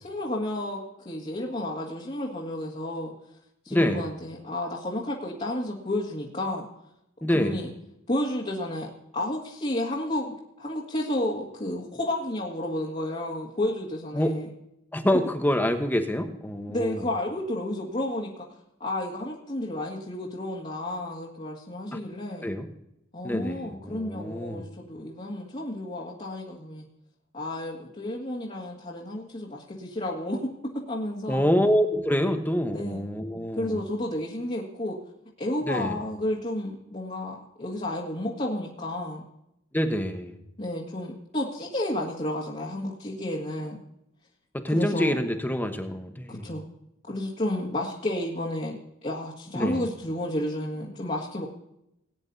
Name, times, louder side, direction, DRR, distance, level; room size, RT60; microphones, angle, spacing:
voice 1, 0.0-0.8 1.1-3.1 3.6-6.7 7.3-7.7 8.1-8.9 9.1-14.5 16.7-18.5 18.8-22.5 23.1-26.8 27.3-30.5 30.9-31.5 32.7-33.1 33.6-35.0 35.4-39.2 40.6-43.8 44.7-45.2 46.3-46.6 47.0-51.5, left 1 dB, 35° left, -5 dB, 2.0 m, -31 dB
voice 2, 3.7-4.1 7.2-7.6 14.1-14.4 14.9-17.0 21.9-22.0 22.4-22.7 23.2-24.6 31.3-33.8 35.6-36.0 39.7-40.3 44.5-46.5 49.5-49.8, equal, 10° left, 6 dB, 1.1 m, -26 dB
19.5 x 9.8 x 2.7 m, 0.81 s
head